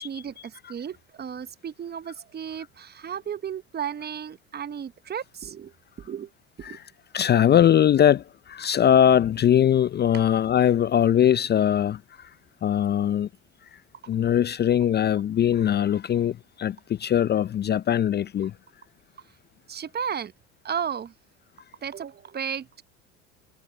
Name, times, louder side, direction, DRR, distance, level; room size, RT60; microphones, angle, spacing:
voice 1, 0.0-5.7 6.0-6.3 6.6-6.8 10.1-10.2 19.7-20.3 20.6-21.1 21.8-22.8, right 8 dB, 25° right, 1.0 m, -34 dB
voice 2, 7.1-12.3 12.6-13.3 13.7-13.8 14.1-18.5, left 10 dB, 30° left, 0.6 m, -21 dB
hypercardioid pair, 80°, 36 cm